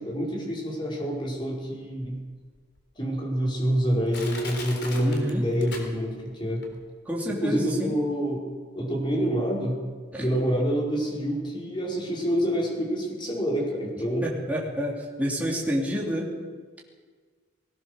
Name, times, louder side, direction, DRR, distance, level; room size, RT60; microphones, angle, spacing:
voice 1, 0.0-2.2 3.0-6.6 7.4-8.4 8.7-9.8 10.2-14.2, equal, 25° left, -2 dB, 5.3 m, -27 dB
Crushing, 2.0-2.1 2.8-2.9 3.5-3.6 4.1-6.3 6.6-6.7, left 3 dB, 55° left, 4.1 m, -39 dB
voice 2, 5.0-5.5 7.0-7.9 10.1-10.3 14.2-16.3, equal, 10° right, -3 dB, 3.2 m, -29 dB
20.0 x 19.0 x 6.7 m, 1.5 s
head